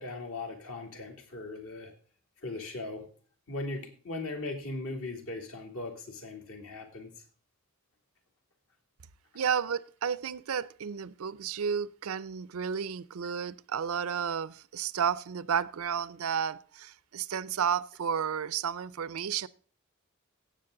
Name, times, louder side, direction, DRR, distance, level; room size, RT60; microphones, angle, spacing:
voice 1, 0.0-1.9 2.4-3.1 3.5-7.2 9.3-9.4, left 2 dB, 70° left, 2.7 m, -39 dB
voice 2, 9.3-19.5, right 7 dB, 90° right, 0.5 m, -32 dB
16.5 x 7.4 x 3.8 m
head